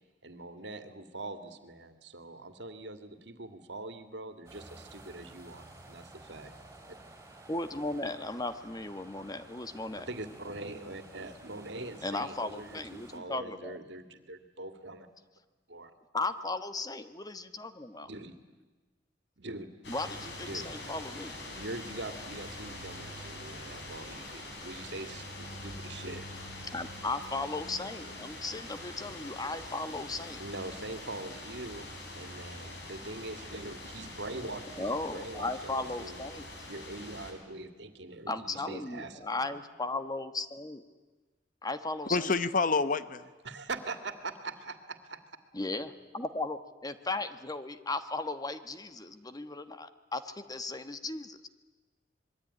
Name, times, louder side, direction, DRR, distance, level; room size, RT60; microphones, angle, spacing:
voice 1, 0.2-6.7 9.9-15.1 15.7-15.9 18.0-18.4 19.4-19.7 20.4-20.7 21.5-26.4 30.4-36.3 36.7-39.6 43.4-45.2, right 2 dB, 70° right, 9 dB, 2.3 m, -43 dB
sound 1, 4.5-13.2, right 2 dB, 15° right, 4.5 m, -53 dB
voice 2, 7.5-10.1 12.0-13.8 16.1-18.1 19.9-21.4 26.7-30.4 34.8-36.5 38.3-40.8 41.6-42.3 45.5-51.5, left 2 dB, 20° left, 10 dB, 1.3 m, -36 dB
sound 2, 19.8-37.3, left 2 dB, 70° left, 6.0 m, -44 dB
voice 3, 42.1-43.3, left 4 dB, 50° left, 13 dB, 1.1 m, -27 dB
25.5 x 22.0 x 9.8 m, 1.2 s
head